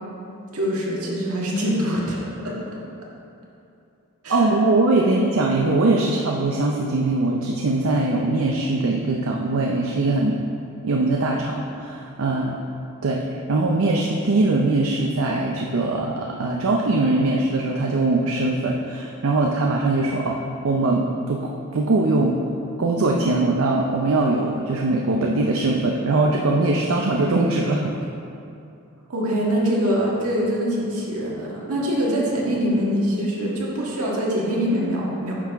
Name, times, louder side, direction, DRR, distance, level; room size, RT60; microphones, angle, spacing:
voice 1, 0.5-2.7 4.2-4.5 29.1-35.3, equal, 85° right, -4 dB, 1.7 m, -24 dB
voice 2, 4.3-10.4 10.8-12.6 13.0-22.4 22.8-27.9, right 2 dB, 70° right, 0 dB, 0.5 m, -21 dB
9.4 x 5.7 x 3.5 m, 2.7 s
head